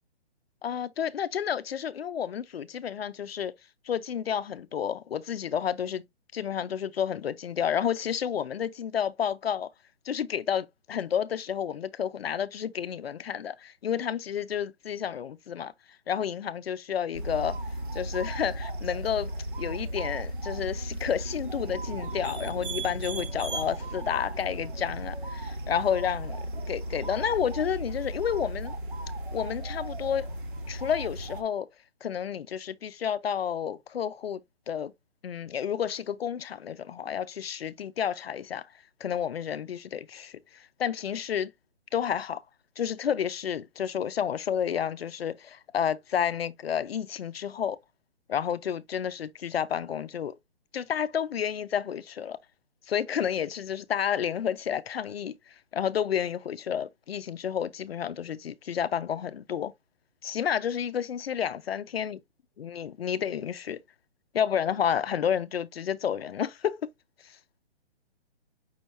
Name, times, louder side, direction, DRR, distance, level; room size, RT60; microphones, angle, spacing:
voice 1, 0.6-3.5 3.8-6.0 6.3-9.7 10.1-15.7 16.1-17.6 17.9-19.3 19.6-28.7 29.3-30.3 30.7-31.7 32.0-34.4 34.7-34.9 35.2-38.7 39.0-41.5 41.9-42.4 42.8-47.8 48.3-50.4 50.7-52.4 52.9-59.7 60.2-62.2 62.6-63.8 64.3-66.8 67.2-67.3, left 8 dB, 65° left, 0.5 m, -30 dB
sound 1, 17.1-31.4, right 1 dB, 50° right, 1.2 m, -35 dB
5.5 x 3.3 x 2.6 m
hypercardioid pair, 170°, 33 cm